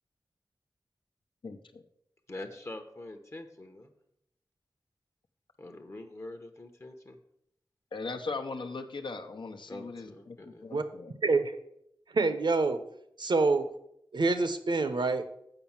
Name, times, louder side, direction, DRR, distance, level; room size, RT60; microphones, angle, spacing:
voice 1, 1.4-1.8 7.9-11.1, left 3 dB, 70° left, 4 dB, 0.9 m, -39 dB
voice 2, 2.3-3.9 5.6-7.2 9.7-10.6, left 2 dB, 35° left, 6 dB, 0.9 m, -44 dB
voice 3, 11.2-11.5 12.1-12.8 13.2-13.6 14.1-15.2, right 3 dB, 65° right, 9 dB, 0.9 m, -26 dB
7.7 x 5.2 x 7.2 m, 0.76 s
wide cardioid pair, 105°, 9 cm